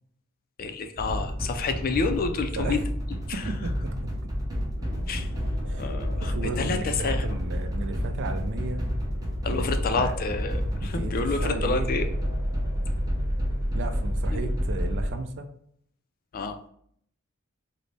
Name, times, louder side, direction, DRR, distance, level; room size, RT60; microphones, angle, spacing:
voice 1, 0.6-2.8 3.3-3.4 5.1-5.3 5.8-7.3 9.4-12.1 14.3-14.5 16.3-16.6, left 4 dB, 40° left, 7 dB, 0.3 m, -29 dB
sound 1, 1.0-15.1, equal, 15° right, 0.6 m, -29 dB
voice 2, 3.3-4.3 5.7-5.9 6.2-8.9 9.5-9.7 9.9-10.2 10.8-11.9 13.7-15.5, right 3 dB, 55° right, 7 dB, 0.4 m, -34 dB
sound 2, 4.8-15.2, left 2 dB, 80° left, 0.6 m, -40 dB
3.9 x 2.0 x 3.3 m, 0.66 s
head